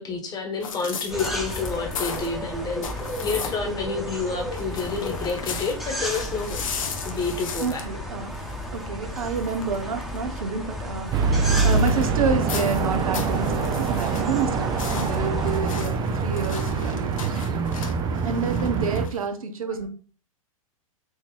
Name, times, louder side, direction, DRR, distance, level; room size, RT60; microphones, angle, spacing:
voice 1, 0.0-2.9 3.2-6.6 7.0-7.9, left 4 dB, 20° left, 2 dB, 1.3 m, -29 dB
sound 1, 0.6-3.8 4.1-19.3, left 6 dB, 70° left, 0.8 m, -37 dB
sound 2, 1.1-15.6, equal, ahead, 1.1 m, -34 dB
voice 2, 7.6-8.3 8.7-17.4 18.2-19.9, right 5 dB, 75° right, 7 dB, 0.9 m, -29 dB
sound 3, 11.1-19.1, right 5 dB, 25° right, 0.5 m, -25 dB
4.3 x 2.9 x 4.0 m, 0.38 s
hypercardioid pair, 105°, 18 cm